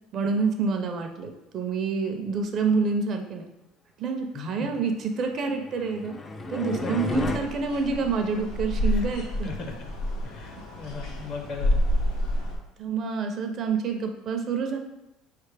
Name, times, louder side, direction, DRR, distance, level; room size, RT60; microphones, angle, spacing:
voice 1, 0.1-3.5 4.0-6.1 6.5-9.5 12.8-14.8, right 4 dB, 50° right, 4 dB, 0.6 m, -27 dB
voice 2, 4.3-4.8 6.5-7.3 8.8-9.0 9.4-9.9 10.2-11.8, left 3 dB, 50° left, 4 dB, 0.7 m, -37 dB
sound 1, 5.4-7.4, left 2 dB, 20° left, 0.4 m, -33 dB
sound 2, 7.1-12.6, equal, 85° left, 1.1 m, -29 dB
4.4 x 3.3 x 3.3 m, 0.91 s
cardioid pair, 115°, 0 cm